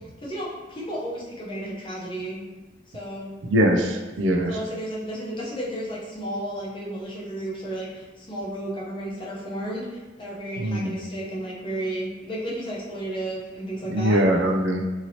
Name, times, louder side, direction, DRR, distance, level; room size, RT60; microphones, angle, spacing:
voice 1, 0.2-2.4 2.9-3.3 4.5-14.2, right 1 dB, 25° left, -6 dB, 0.7 m, -33 dB
voice 2, 3.4-4.6 10.6-11.0 13.8-14.8, equal, 75° right, 3 dB, 0.4 m, -22 dB
2.8 x 2.7 x 2.8 m, 1.2 s
head